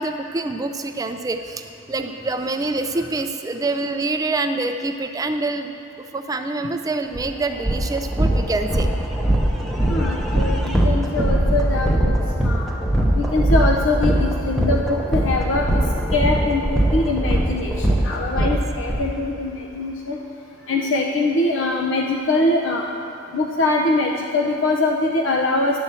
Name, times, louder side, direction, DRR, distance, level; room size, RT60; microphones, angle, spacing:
voice 1, 0.0-5.7 6.1-8.9 18.3-18.6, right 2 dB, 20° right, 6 dB, 0.3 m, -26 dB
sound 1, 7.1-7.2 7.6-19.0, right 1 dB, ahead, 0.8 m, -20 dB
voice 2, 9.9-12.1 12.4-12.7 13.2-15.8 16.1-20.2 20.7-22.9 23.3-25.8, left 2 dB, 75° left, 0 dB, 0.6 m, -23 dB
11.0 x 4.2 x 7.5 m, 2.7 s
head